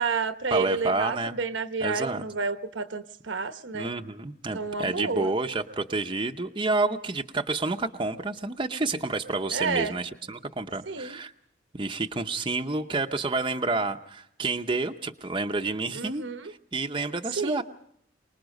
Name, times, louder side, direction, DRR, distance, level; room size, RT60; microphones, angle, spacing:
voice 1, 0.0-3.9 4.5-5.3 9.5-9.9 10.9-11.2 15.9-16.5 17.4-17.6, right 4 dB, 70° right, 1.0 m, -30 dB
voice 2, 0.5-1.4 1.8-2.2 3.7-11.3 11.7-17.6, right 3 dB, 25° right, 0.7 m, -29 dB
24.5 x 20.0 x 5.3 m
head